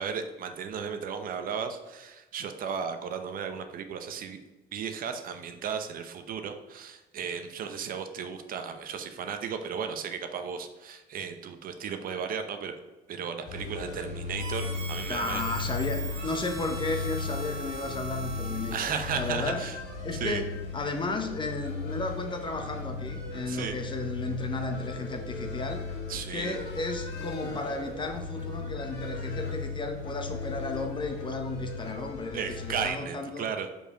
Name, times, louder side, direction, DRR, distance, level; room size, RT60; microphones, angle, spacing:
voice 1, 0.0-4.4 4.7-12.7 13.1-15.5 18.7-19.8 20.1-20.4 23.5-23.8 26.1-26.6 32.3-33.7, right 6 dB, 55° right, 7 dB, 0.8 m, -35 dB
sound 1, 13.5-32.9, left 4 dB, 85° left, 1.9 m, -36 dB
Harmonica, 14.4-19.4, right 4 dB, 90° right, 1.7 m, -41 dB
voice 2, 15.1-18.8 19.1-19.6 20.0-20.5 20.7-25.8 26.3-33.5, left 3 dB, 30° left, 5 dB, 1.0 m, -34 dB
5.2 x 4.8 x 5.0 m, 1.1 s
cardioid pair, 110°, 17 cm